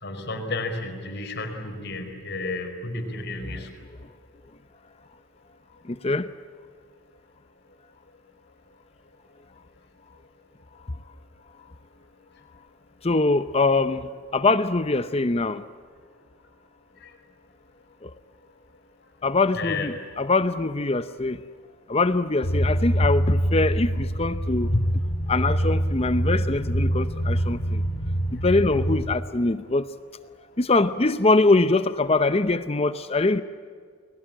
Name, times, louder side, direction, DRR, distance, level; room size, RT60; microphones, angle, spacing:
voice 1, 0.0-3.7 17.0-17.1 19.5-19.9, left 3 dB, 50° left, 4.9 m, -32 dB
voice 2, 5.9-6.3 13.0-15.6 18.0-18.1 19.2-21.4 21.9-24.9 25.3-27.8 28.4-29.9 30.6-33.4, left 3 dB, 25° left, 0.7 m, -23 dB
sound 1, 22.4-29.2, equal, 85° left, 4.9 m, -25 dB
30.0 x 21.5 x 8.8 m
head